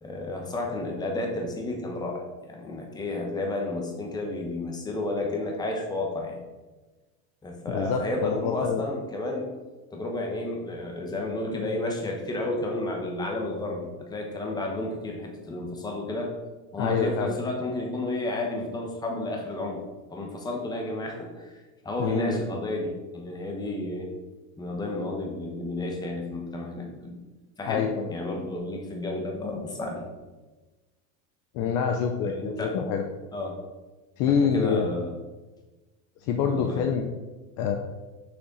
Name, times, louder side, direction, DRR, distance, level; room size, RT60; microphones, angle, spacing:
voice 1, 0.0-6.4 7.4-9.6 9.9-16.3 16.7-19.8 20.1-24.1 24.6-27.2 27.6-30.0 32.2-32.7 33.3-33.6 34.3-35.1 36.4-36.8, left 2 dB, 10° left, 1 dB, 1.0 m, -32 dB
voice 2, 7.7-8.8 16.8-17.3 22.0-22.4 27.7-28.1 31.5-33.0 34.2-34.9 36.3-37.1 37.6-37.8, left 6 dB, 40° left, 4 dB, 0.6 m, -26 dB
6.5 x 5.9 x 3.9 m, 1.2 s
supercardioid pair, 160°, 42 cm